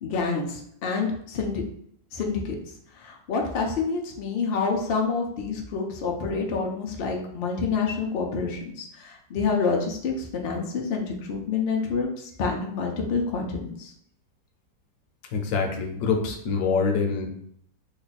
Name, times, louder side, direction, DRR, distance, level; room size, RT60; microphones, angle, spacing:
voice 1, 0.0-1.6 2.1-2.6 3.0-12.1 12.4-13.9, left 4 dB, 85° left, 1 dB, 0.5 m, -27 dB
voice 2, 15.3-17.3, left 5 dB, 70° left, 3 dB, 1.1 m, -25 dB
3.1 x 2.3 x 4.0 m, 0.67 s
omnidirectional pair, 1.8 m